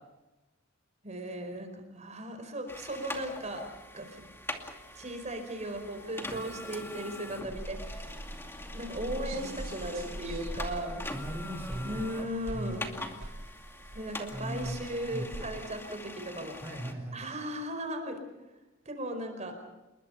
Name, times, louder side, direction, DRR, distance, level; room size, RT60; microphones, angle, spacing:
voice 1, 1.0-3.6 3.9-4.2 4.6-8.2 8.7-11.0 11.8-13.0 13.9-16.6 17.1-18.2 18.8-19.5, right 1 dB, 35° right, 6 dB, 4.9 m, -37 dB
sound 1, 2.7-16.9, left 1 dB, 10° left, 2.4 m, -43 dB
sound 2, 7.4-15.7, right 1 dB, 75° right, 2.3 m, -42 dB
voice 2, 11.1-12.1 12.5-12.9 14.3-14.8 15.1-15.3 16.6-17.2, right 1 dB, 10° right, 0 dB, 4.1 m, -38 dB
28.0 x 22.0 x 5.7 m, 1.0 s
head